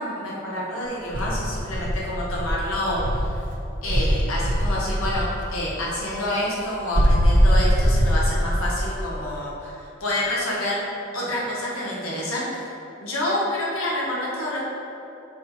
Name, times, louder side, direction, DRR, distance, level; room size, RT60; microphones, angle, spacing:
voice 1, 0.0-3.4 3.8-10.8 11.1-12.7 13.0-14.6, left 1 dB, 80° left, -5 dB, 1.3 m, -28 dB
Insect, 1.1-3.4 3.9-5.3 6.9-8.6, equal, 40° right, 0.8 m, -20 dB
6.3 x 4.4 x 4.3 m, 2.8 s
head